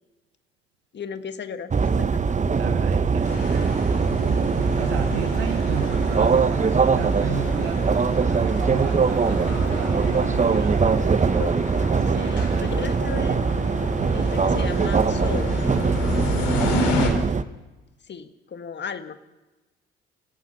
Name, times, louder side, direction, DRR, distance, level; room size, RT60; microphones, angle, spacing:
voice 1, 0.9-2.2 10.4-11.6 12.0-13.4 14.1-15.6 18.0-19.2, left 6 dB, 35° left, 9 dB, 1.7 m, -36 dB
sound 1, 1.7-17.4, right 5 dB, 25° right, 1.0 m, -22 dB
voice 2, 2.6-3.8 4.1-7.9 8.3-11.1 12.1-12.7 16.5-17.0, right 8 dB, 75° right, 8 dB, 1.5 m, -33 dB
sound 2, 3.2-17.1, left 4 dB, 70° left, 4.7 m, -32 dB
26.0 x 17.5 x 5.8 m, 1.1 s
figure-of-eight pair, 50°, 30 cm